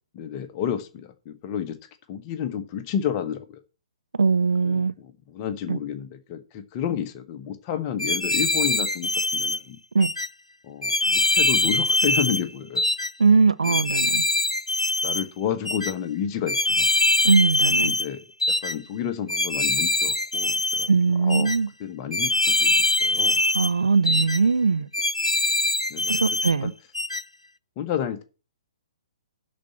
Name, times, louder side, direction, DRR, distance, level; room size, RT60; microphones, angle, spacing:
voice 1, 0.1-1.8 2.1-3.6 4.6-9.8 10.6-12.8 13.6-13.8 15.0-16.9 17.7-21.5 21.8-23.4 25.9-26.7 27.8-28.2, left 9 dB, 30° left, 1.0 m, -31 dB
voice 2, 4.2-4.9 5.7-5.8 9.9-10.1 13.2-14.2 17.2-17.9 20.9-21.7 23.5-24.9 26.1-26.7, right 4 dB, 70° right, 0.5 m, -20 dB
sound 1, 8.0-9.6 10.0-10.3 10.8-12.4 12.8-13.1 13.6-15.2 15.7-15.9 16.5-18.1 18.4-18.8 19.3-20.9 21.3-21.6 22.1-23.7 24.1-24.4 24.9-26.5 27.0-27.2, left 2 dB, 85° left, 0.5 m, -23 dB
11.5 x 4.3 x 7.2 m
figure-of-eight pair, 125°, 3 cm